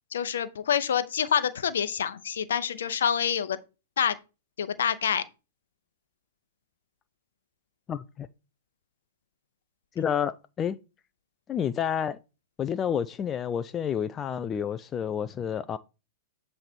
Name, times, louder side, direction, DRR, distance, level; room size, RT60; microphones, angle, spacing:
voice 1, 0.1-3.6 4.0-4.2 4.6-5.2, left 8 dB, 65° left, 0.6 m, -27 dB
voice 2, 7.9-8.3 10.0-10.8 11.5-12.2 12.6-15.8, left 8 dB, 25° left, 0.3 m, -29 dB
7.6 x 3.2 x 4.3 m
figure-of-eight pair, 100°, 0 cm